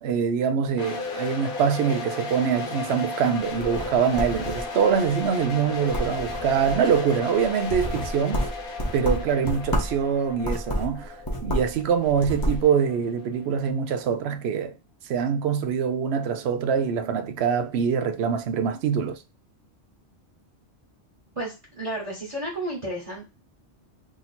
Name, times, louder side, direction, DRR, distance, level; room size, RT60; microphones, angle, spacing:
voice 1, 0.0-8.4 8.9-14.7 15.1-19.2, right 7 dB, 65° right, 0.8 m, -24 dB
sound 1, 0.8-13.6, left 4 dB, 55° left, 0.9 m, -35 dB
sound 2, 3.6-4.9 5.4-5.6 5.9-6.9 7.4-10.0 10.4-11.8 12.1-12.6, equal, 20° left, 0.8 m, -29 dB
voice 2, 21.3-23.3, right 1 dB, 30° right, 1.2 m, -32 dB
2.8 x 2.8 x 4.1 m
omnidirectional pair, 1.2 m